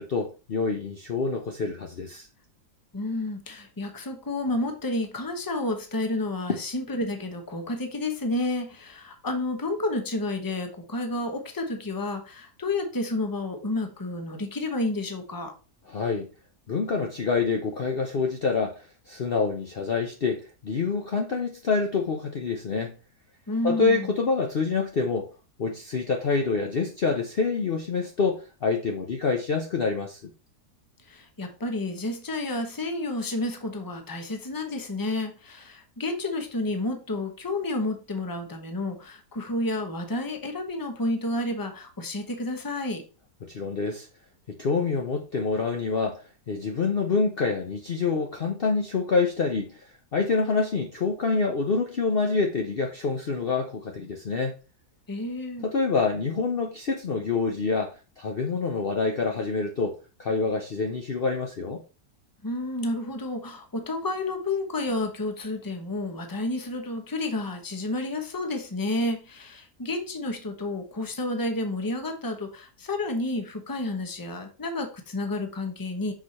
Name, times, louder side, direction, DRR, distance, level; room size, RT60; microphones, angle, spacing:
voice 1, 0.0-2.3 6.5-6.6 15.9-16.3 16.7-22.9 23.6-25.3 25.6-30.2 43.4-44.1 44.6-49.9 50.1-54.5 55.6-61.8, left 4 dB, 45° left, 0.8 m, -27 dB
voice 2, 2.9-15.5 23.5-24.1 31.1-43.0 55.1-55.6 62.4-76.1, left 2 dB, 15° left, 0.9 m, -30 dB
6.2 x 4.9 x 4.1 m
omnidirectional pair, 1.6 m